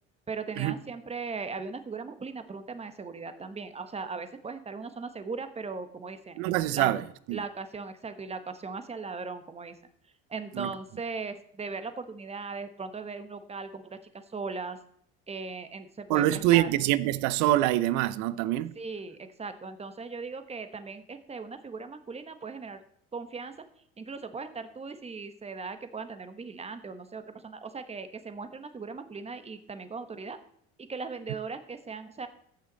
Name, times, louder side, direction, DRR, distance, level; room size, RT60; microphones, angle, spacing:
voice 1, 0.3-6.4 6.7-6.9 7.3-9.8 10.3-14.8 15.3-16.7 18.7-22.8 23.1-23.5 24.0-30.4 30.8-32.3, right 4 dB, 20° right, 1.2 m, -38 dB
voice 2, 6.4-7.0 7.3-7.4 10.6-10.7 16.1-18.7, right 15 dB, 75° right, 0.7 m, -25 dB
14.5 x 6.4 x 4.0 m
supercardioid pair, 90°, 30 cm